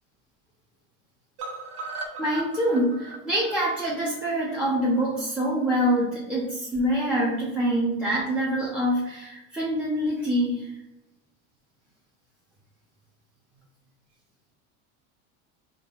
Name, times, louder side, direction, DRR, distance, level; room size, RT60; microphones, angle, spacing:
sound 1, 1.4-5.4 5.7-5.8 6.1-6.2 6.5-6.6, right 3 dB, 70° right, 1.0 m, -39 dB
voice 1, 2.2-10.7, equal, 5° right, -4 dB, 0.8 m, -25 dB
3.9 x 3.8 x 2.5 m, 0.96 s
supercardioid pair, 120°, 42 cm